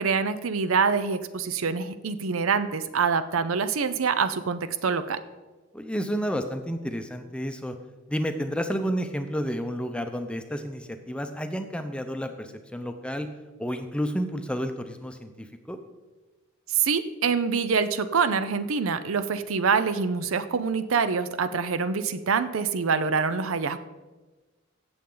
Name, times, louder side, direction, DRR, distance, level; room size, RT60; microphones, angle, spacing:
voice 1, 0.0-5.2 16.7-23.8, right 5 dB, 75° right, 12 dB, 0.6 m, -25 dB
voice 2, 5.7-7.7 8.1-13.3 13.6-15.8, equal, 5° left, 7 dB, 0.6 m, -31 dB
16.0 x 7.0 x 3.9 m, 1.2 s
head